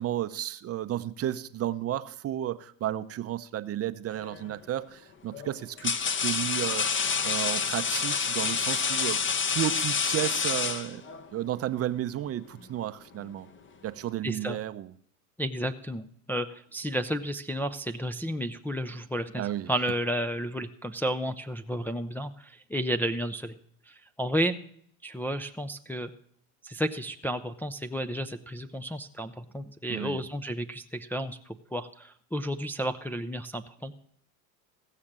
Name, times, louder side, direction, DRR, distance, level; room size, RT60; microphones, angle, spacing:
voice 1, 0.0-9.2 9.5-11.0 11.3-13.5 13.8-14.9 19.4-19.7 29.9-30.2, right 12 dB, 35° right, 0.6 m, -33 dB
sound 1, 4.2-4.5 5.3-11.3, left 6 dB, 25° left, 1.0 m, -28 dB
voice 2, 14.2-14.6 15.4-23.6 23.9-24.6 25.0-26.1 26.6-33.9, equal, 5° left, 0.5 m, -32 dB
16.0 x 6.6 x 7.3 m
supercardioid pair, 100°, 43 cm